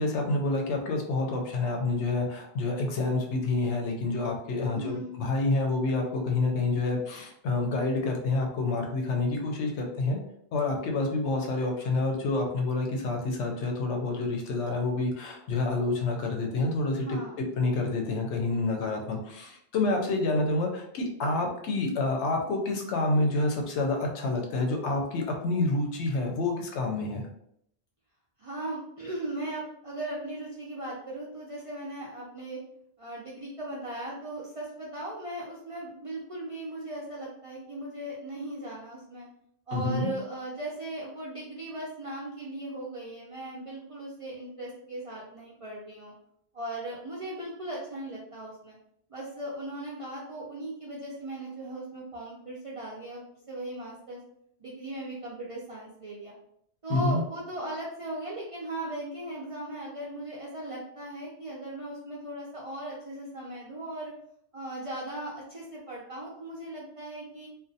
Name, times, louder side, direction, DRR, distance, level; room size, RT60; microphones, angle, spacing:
voice 1, 0.0-10.2 10.5-17.2 17.6-27.3 39.7-40.1 56.9-57.2, left 2 dB, 85° left, 2 dB, 0.9 m, -28 dB
voice 2, 4.7-5.2 17.0-17.4 28.4-32.6 33.0-39.3 39.7-46.1 46.5-48.8 49.1-54.2 54.6-56.3 56.8-64.1 64.5-67.5, right 1 dB, 60° right, -6 dB, 0.3 m, -38 dB
2.4 x 2.1 x 2.6 m, 0.72 s
omnidirectional pair, 1.2 m